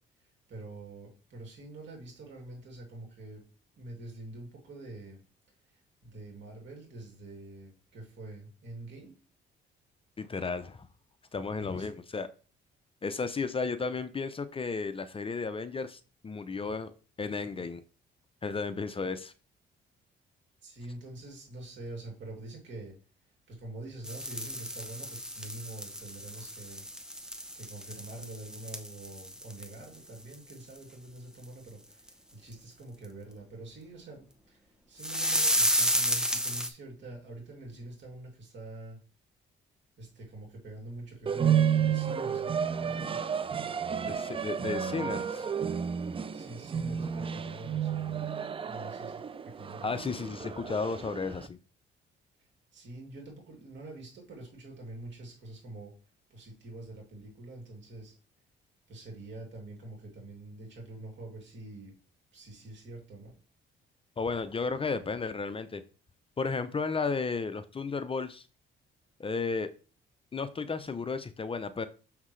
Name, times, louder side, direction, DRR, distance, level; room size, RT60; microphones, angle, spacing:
voice 1, 0.2-3.4 3.8-5.2 6.0-9.2 11.6-11.9 20.6-22.9 23.5-26.8 27.5-39.0 40.0-43.3 46.3-48.3 48.6-49.9 52.7-55.9 56.3-58.2 58.9-61.9 62.3-63.3, right 2 dB, 65° right, 1 dB, 2.8 m, -45 dB
voice 2, 10.2-10.9 11.3-12.3 13.0-16.9 17.2-17.8 18.4-19.3 44.1-45.5 49.8-51.6 64.2-65.8 66.4-68.4 69.2-69.7 70.3-71.9, left 4 dB, 25° left, 11 dB, 0.6 m, -33 dB
sound 1, 24.0-30.0 30.3-30.5 30.8-30.9 31.4-31.5 32.1-32.2 35.0-36.7, equal, 5° right, 0.8 m, -31 dB
sound 2, 41.3-51.5, right 8 dB, 25° right, 0.4 m, -31 dB
6.4 x 5.8 x 3.2 m, 0.36 s
cardioid pair, 90°, 20 cm